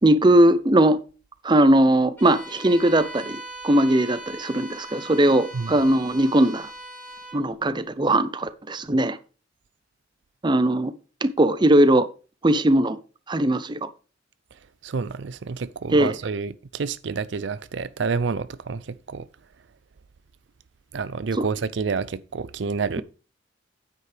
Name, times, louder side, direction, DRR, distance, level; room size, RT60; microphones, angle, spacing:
voice 1, 0.0-1.0 1.4-6.7 7.3-9.2 10.4-10.9 11.2-12.1 12.4-13.0 13.3-13.9 15.9-16.1 21.4-21.5, right 1 dB, 25° right, 0.6 m, -19 dB
Bowed string instrument, 2.2-7.5, right 1 dB, 10° left, 2.8 m, -40 dB
voice 2, 14.8-19.3 20.9-23.0, right 5 dB, 65° right, 0.5 m, -29 dB
9.5 x 8.4 x 3.4 m
head